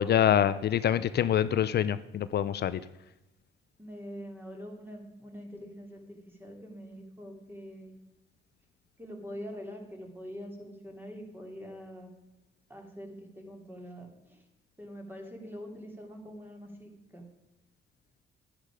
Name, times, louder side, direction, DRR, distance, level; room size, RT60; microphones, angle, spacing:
voice 1, 0.0-2.8, left 10 dB, 55° left, 14 dB, 0.5 m, -25 dB
voice 2, 3.8-7.9 9.0-12.1 12.7-14.4 14.8-17.2, equal, 10° right, 2 dB, 2.8 m, -44 dB
10.5 x 9.9 x 5.0 m, 0.95 s
cardioid pair, 90°, 20 cm